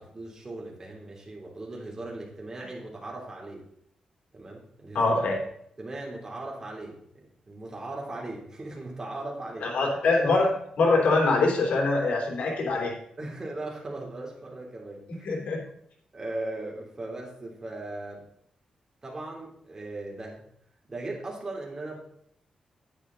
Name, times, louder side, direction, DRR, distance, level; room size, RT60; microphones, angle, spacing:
voice 1, 0.0-3.6 4.3-5.1 5.8-9.7 13.2-15.3 16.1-18.2 19.0-20.4 20.9-22.0, right 2 dB, 25° right, -2 dB, 3.3 m, -38 dB
voice 2, 4.9-5.4 9.6-13.0 15.2-15.6, left 3 dB, 80° left, -1 dB, 3.6 m, -24 dB
10.5 x 9.0 x 4.0 m, 0.70 s
wide cardioid pair, 140°, 2 cm